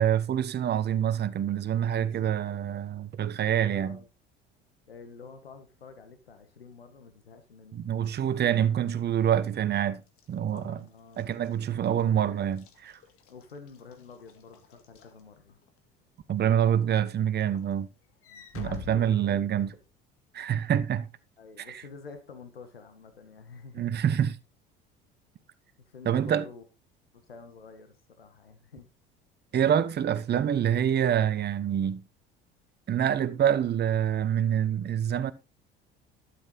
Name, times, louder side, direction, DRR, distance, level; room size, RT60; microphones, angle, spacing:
voice 1, 0.0-4.0 7.7-10.0 10.3-10.8 11.2-13.0 16.3-17.9 18.5-19.7 20.3-21.1 21.6-21.8 23.8-24.4 26.0-26.4 29.5-32.0 32.9-35.3, right 9 dB, 35° right, 1.1 m, -26 dB
voice 2, 1.9-2.6 3.7-4.1 4.9-7.9 10.5-11.3 11.8-11.9 13.3-15.6 18.3-19.5 21.4-23.9 25.8-26.6 27.1-28.9, left 5 dB, 90° left, 1.6 m, -49 dB
Walk footsteps / Slam, 10.1-15.8 16.3-16.6 16.9-19.9, left 7 dB, 50° left, 2.1 m, -49 dB
12.5 x 7.9 x 4.0 m
figure-of-eight pair, 65°, 29 cm